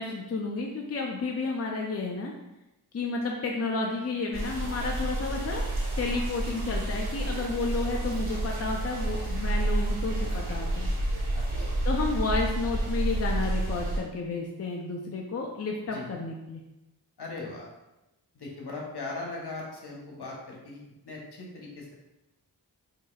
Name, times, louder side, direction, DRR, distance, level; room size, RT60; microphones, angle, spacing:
voice 1, 0.0-2.3 2.9-5.7 6.0-10.9 11.8-16.6, left 3 dB, 40° left, 0 dB, 0.5 m, -31 dB
sound 1, 4.3-14.0, right 1 dB, 65° right, 1.2 m, -29 dB
voice 2, 17.2-17.7 18.3-21.9, left 3 dB, 70° left, -2 dB, 1.0 m, -39 dB
4.8 x 2.7 x 2.3 m, 0.96 s
wide cardioid pair, 60°, 40 cm